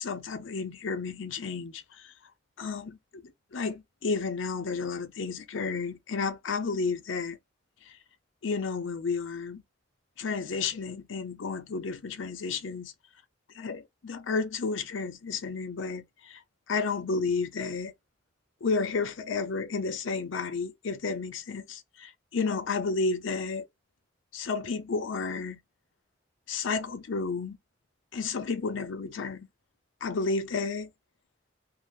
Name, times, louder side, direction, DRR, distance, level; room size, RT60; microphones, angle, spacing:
voice 1, 0.0-2.1 2.6-3.2 3.5-7.4 7.8-8.0 8.4-9.6 10.2-12.9 13.5-16.4 16.7-17.9 18.6-23.6 24.3-25.6 26.5-27.6 28.1-29.5 30.0-30.9, left 4 dB, 85° left, 0.6 m, -32 dB
2.6 x 2.0 x 3.1 m
head